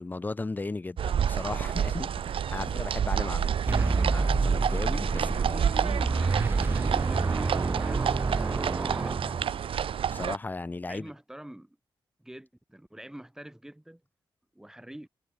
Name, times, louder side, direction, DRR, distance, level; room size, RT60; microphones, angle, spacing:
voice 1, 0.0-3.6 3.8-5.1 5.5-5.6 10.1-11.1, left 3 dB, 20° left, 4.6 m, -36 dB
sound 1, 1.0-10.4, right 8 dB, 80° right, 2.2 m, -29 dB
sound 2, 3.7-9.8, right 3 dB, 25° right, 1.9 m, -28 dB
voice 2, 5.1-9.6 10.9-11.8 12.2-14.0 14.5-15.1, right 1 dB, 5° right, 6.5 m, -45 dB
wide cardioid pair, 180°, 9 cm